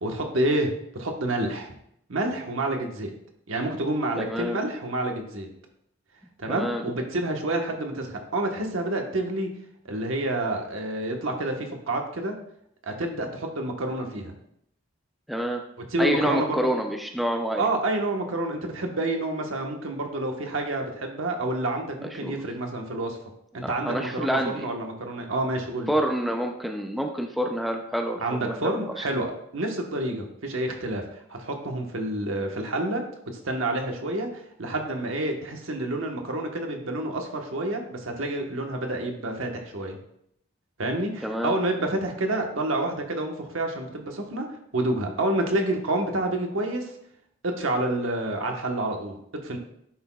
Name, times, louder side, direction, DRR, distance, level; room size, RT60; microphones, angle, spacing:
voice 1, 0.0-1.7 2.1-3.1 3.5-5.5 6.4-9.5 9.8-12.3 12.8-14.3 15.8-16.7 17.6-23.2 23.5-25.9 28.2-31.0 31.3-33.0 33.4-40.0 40.8-44.5 44.7-46.9 47.4-49.2 49.4-49.6, right 1 dB, 75° right, 3 dB, 1.2 m, -28 dB
voice 2, 4.2-4.6 6.5-6.8 15.3-15.6 16.0-17.7 22.0-22.3 23.6-24.7 25.9-29.0 41.2-41.5, equal, ahead, 3 dB, 0.4 m, -28 dB
10.0 x 6.1 x 2.3 m, 0.73 s
head